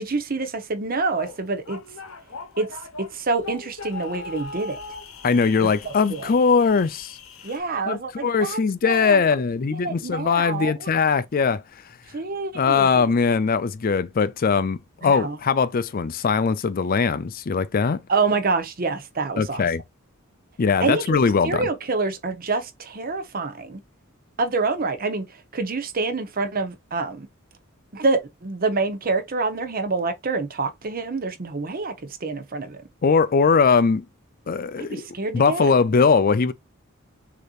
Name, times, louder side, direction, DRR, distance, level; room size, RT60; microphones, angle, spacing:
voice 1, 0.0-1.8 2.6-2.7 3.0-4.8 5.6-6.3 7.4-8.6 8.8-9.4 9.7-10.9 12.1-13.1 15.0-15.4 18.1-19.7 20.8-21.2 21.4-23.8 24.4-25.3 25.5-27.3 27.9-32.8 34.8-35.7, right 3 dB, 45° right, 0.8 m, -27 dB
sound 1, 1.2-7.6, left 4 dB, 80° left, 1.0 m, -39 dB
voice 2, 5.2-7.2 7.9-11.6 12.5-18.0 19.4-19.8 20.6-21.7 33.0-34.0 34.5-35.1 35.3-36.5, left 5 dB, 45° left, 0.4 m, -20 dB
6.5 x 2.9 x 2.4 m
head